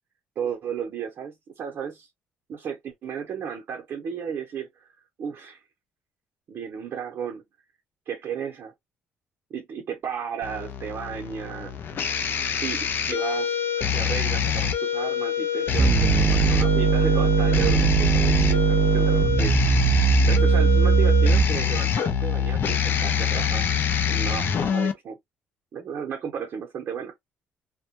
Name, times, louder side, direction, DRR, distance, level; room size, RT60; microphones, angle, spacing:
voice 1, 0.4-2.1 2.5-4.9 5.2-5.6 6.5-7.4 8.1-8.7 9.5-11.8 12.6-13.6 13.9-19.6 20.2-23.7 24.1-25.2 25.7-27.1, right 7 dB, 55° right, 0.7 m, -33 dB
sound 1, 10.4-24.9, left 8 dB, 55° left, 0.5 m, -25 dB
sound 2, 15.8-21.8, right 6 dB, 30° right, 0.3 m, -20 dB
2.1 x 2.1 x 2.8 m
cardioid pair, 100°, 4 cm